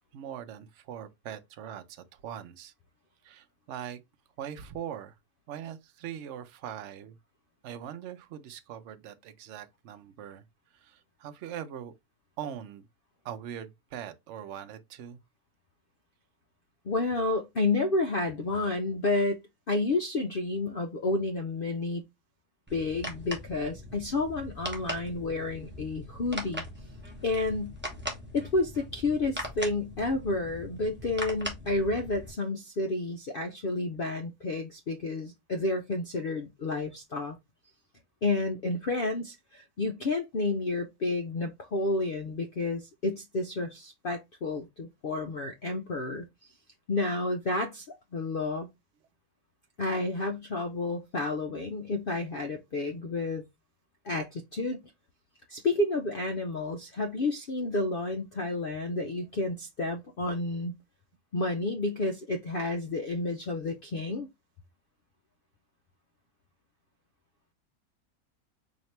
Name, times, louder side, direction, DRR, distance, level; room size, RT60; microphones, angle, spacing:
voice 1, 0.1-2.7 3.2-4.0 4.4-5.1 5.5-7.2 7.6-10.4 10.7-11.9 12.4-12.9 13.2-15.2, right 9 dB, 60° right, 0.8 m, -41 dB
voice 2, 16.8-22.0 22.7-26.6 27.2-27.8 28.3-37.4 38.2-46.2 46.9-48.7 49.8-53.4 54.0-54.8 55.5-60.7 61.3-64.3, left 2 dB, 70° left, 0.5 m, -30 dB
sound 1, 22.7-32.3, equal, 10° right, 0.8 m, -40 dB
4.3 x 2.8 x 3.2 m
omnidirectional pair, 1.6 m